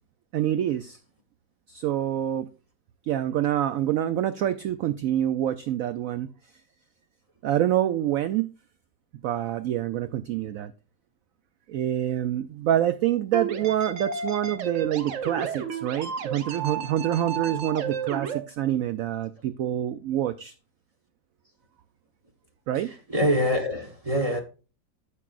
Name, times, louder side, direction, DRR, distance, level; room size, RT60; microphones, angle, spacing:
voice 1, 0.3-1.0 1.7-2.5 3.1-6.3 7.4-8.5 9.2-10.7 11.7-20.5 22.7-22.9, right 11 dB, 70° right, 0.8 m, -26 dB
sound 1, 13.3-18.4, right 6 dB, 55° right, 1.1 m, -32 dB
voice 2, 22.8-24.4, equal, 25° right, 1.0 m, -25 dB
9.8 x 7.4 x 2.5 m
omnidirectional pair, 1.9 m